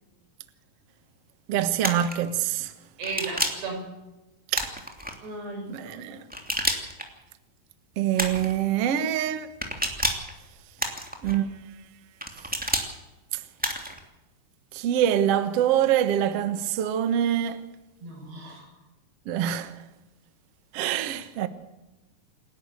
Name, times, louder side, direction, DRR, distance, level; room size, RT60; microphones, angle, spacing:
voice 1, 1.5-2.7 4.5-4.7 5.7-6.2 8.0-9.5 11.2-11.5 13.3-13.4 14.7-17.6 19.2-19.8 20.7-21.5, right 10 dB, 65° right, 1.5 m, -25 dB
sound 1, 1.8-2.1 3.0-3.7 4.5-5.1 6.3-7.1 8.2-8.5 9.6-10.3 10.8-11.4 12.2-12.9 13.6-14.0, equal, 5° right, 1.9 m, -29 dB
voice 2, 3.0-3.9 5.2-6.2 18.0-18.7, right 3 dB, 85° right, 8.4 m, -36 dB
28.5 x 11.5 x 8.2 m
omnidirectional pair, 4.7 m